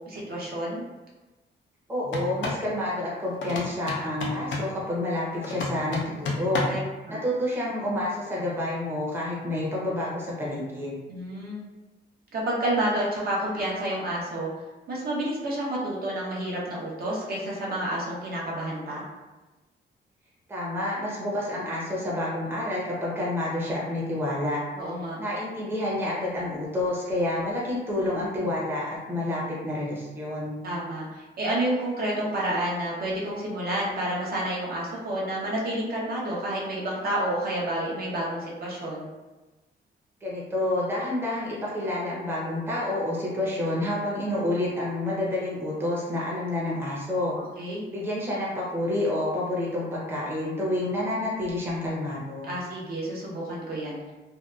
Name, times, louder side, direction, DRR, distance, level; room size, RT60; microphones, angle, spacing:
voice 1, 0.1-0.8 6.7-6.8 7.1-7.2 11.1-11.6 12.3-14.5 14.9-19.0 24.7-25.2 30.6-39.1 47.6-47.8 52.5-54.0, right 1 dB, 55° right, -4 dB, 0.7 m, -29 dB
voice 2, 1.9-6.6 7.1-10.9 20.5-24.6 25.2-30.6 40.2-47.4 47.9-52.5, left 1 dB, 10° right, -6 dB, 0.6 m, -29 dB
sound 1, 2.0-2.7 3.4-4.8 5.4-6.9, left 2 dB, 90° left, 0.5 m, -31 dB
2.7 x 2.2 x 2.3 m, 1.1 s
cardioid pair, 125°, 19 cm